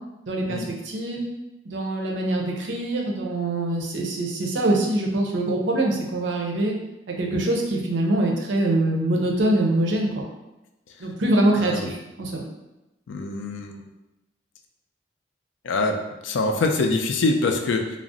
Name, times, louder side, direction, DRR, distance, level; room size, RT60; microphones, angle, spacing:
voice 1, 0.3-1.2 1.7-6.7 7.2-10.2 11.0-12.4, right 1 dB, 70° right, 0 dB, 0.5 m, -24 dB
voice 2, 13.1-13.8 15.6-18.0, left 3 dB, 75° left, 4 dB, 0.4 m, -24 dB
2.5 x 2.0 x 3.6 m, 0.96 s
head